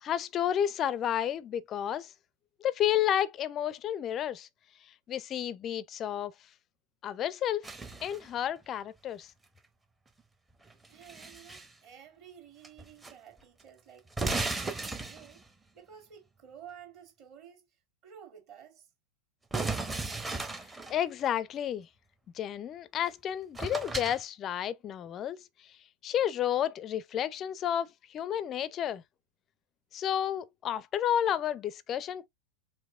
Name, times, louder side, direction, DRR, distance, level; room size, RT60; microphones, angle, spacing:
voice 1, 0.0-2.1 2.6-4.5 5.1-6.3 7.0-7.7 8.0-9.3 20.9-21.9 22.3-25.5 26.0-29.0 29.9-32.3, left 10 dB, 30° left, 0.4 m, -31 dB
sound 1, 7.6-8.3 10.7-11.7 12.6-13.1 13.4-13.5 14.1-15.5 19.5-21.0 23.1-23.2 23.5-24.2, right 3 dB, 10° right, 0.7 m, -35 dB
voice 2, 10.9-14.1 14.5-15.5 15.7-17.7 18.0-18.9, right 8 dB, 40° right, 1.6 m, -52 dB
4.6 x 3.1 x 2.4 m
figure-of-eight pair, 90°, 0 cm